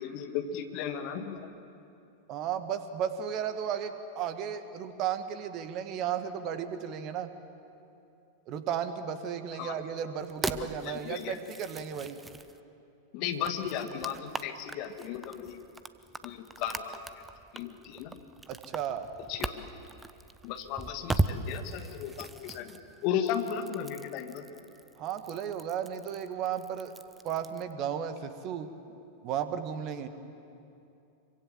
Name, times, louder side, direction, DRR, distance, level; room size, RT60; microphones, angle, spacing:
voice 1, 0.0-1.5 9.6-9.7 10.5-11.4 13.1-15.6 16.2-17.0 17.5-18.2 19.3-19.7 20.4-24.5, left 8 dB, 45° left, 6 dB, 2.2 m, -35 dB
voice 2, 2.3-7.3 8.5-12.2 18.5-19.1 25.0-26.9 27.2-28.7 29.2-30.1, right 8 dB, 40° right, 9 dB, 1.9 m, -34 dB
sound 1, 10.2-12.6 13.3-27.7, right 3 dB, 10° right, 0.9 m, -39 dB
26.5 x 24.5 x 7.6 m, 2.7 s
figure-of-eight pair, 90°, 0 cm